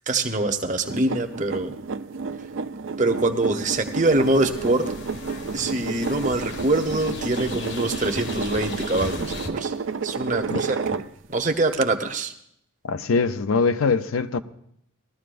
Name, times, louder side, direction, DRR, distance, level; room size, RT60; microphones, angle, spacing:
voice 1, 0.1-1.7 3.0-4.9 5.5-9.7 10.0-11.0 11.3-12.3, right 2 dB, 35° right, 0.9 m, -24 dB
sound 1, 0.8-11.3 11.7-11.8, right 4 dB, 65° right, 0.4 m, -31 dB
sound 2, 3.7-9.5, left 3 dB, 55° left, 1.2 m, -37 dB
voice 2, 12.8-14.4, left 4 dB, 85° left, 0.6 m, -22 dB
19.5 x 13.5 x 2.5 m
head